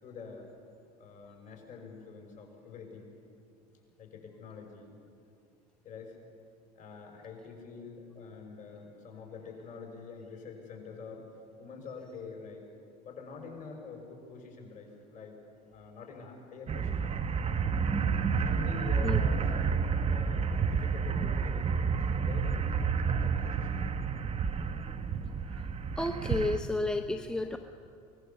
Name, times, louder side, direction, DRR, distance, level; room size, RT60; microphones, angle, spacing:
voice 1, 0.0-0.5 1.0-3.1 4.0-5.0 5.8-6.2 6.8-12.6 13.0-15.4 15.7-17.1 18.4-19.7 20.0-22.5 23.0-23.8, left 4 dB, 40° left, 1 dB, 5.9 m, -46 dB
sound 1, 16.7-26.6, right 6 dB, 30° right, 1.1 m, -30 dB
voice 2, 26.0-27.6, left 2 dB, 5° left, 5 dB, 0.9 m, -31 dB
24.0 x 18.5 x 7.1 m, 2.5 s
supercardioid pair, 100°, 20 cm